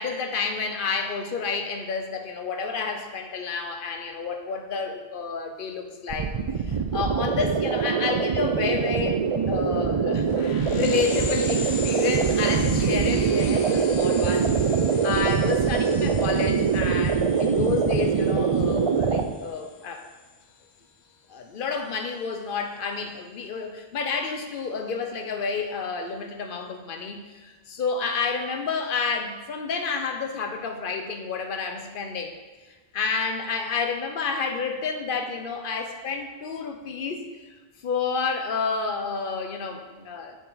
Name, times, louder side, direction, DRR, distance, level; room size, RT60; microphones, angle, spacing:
voice 1, 0.0-6.3 6.7-14.5 15.0-20.0 21.3-32.3 32.9-37.3 37.8-40.4, left 5 dB, 60° left, 5 dB, 0.9 m, -30 dB
sound 1, 6.1-19.2, right 6 dB, 60° right, 0.3 m, -23 dB
sound 2, 10.2-20.4, left 6 dB, 85° left, 0.9 m, -39 dB
6.9 x 4.7 x 3.9 m, 1.3 s
omnidirectional pair, 1.1 m